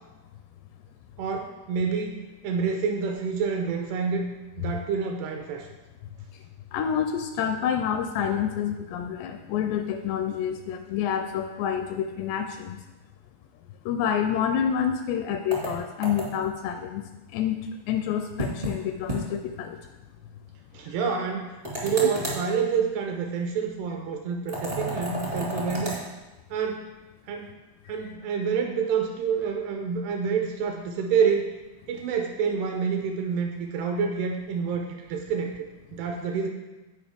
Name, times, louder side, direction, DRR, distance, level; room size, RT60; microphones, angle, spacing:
voice 1, 1.2-4.3 4.6-5.7 20.7-26.0 26.5-26.9 27.3-27.5 27.9-31.5 31.9-35.5 35.9-36.5, right 6 dB, 80° right, 3 dB, 2.6 m, -28 dB
voice 2, 6.7-12.8 13.9-17.0 17.3-19.8, left 8 dB, 85° left, 6 dB, 2.5 m, -28 dB
sound 1, 15.5-16.5 18.4-18.8 19.1-19.2 19.5-19.6 21.6-22.4 24.5-26.0, right 1 dB, 45° right, 0.6 m, -31 dB
15.5 x 5.1 x 3.5 m, 1.1 s
omnidirectional pair, 5.2 m